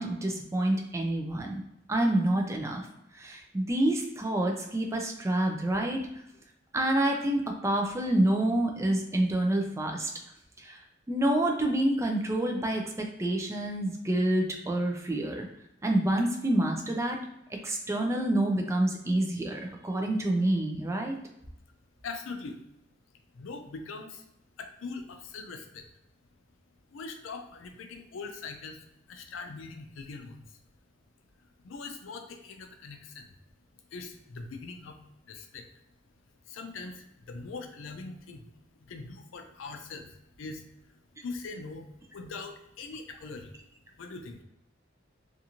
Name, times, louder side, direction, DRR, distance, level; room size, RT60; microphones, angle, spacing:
voice 1, 0.0-1.6 1.9-2.8 3.1-6.0 6.7-10.1 10.6-10.8 11.1-15.5 15.8-17.2 17.6-21.2, right 1 dB, 15° right, 2 dB, 0.4 m, -27 dB
voice 2, 22.0-22.6 23.3-24.3 24.6-25.8 26.9-30.6 31.6-33.3 33.9-35.0 35.2-35.7 36.4-38.5 38.7-40.6 40.9-41.9 42.1-43.6 44.0-44.4, left 4 dB, 80° left, 6 dB, 0.4 m, -42 dB
2.5 x 2.5 x 2.8 m, 0.83 s
head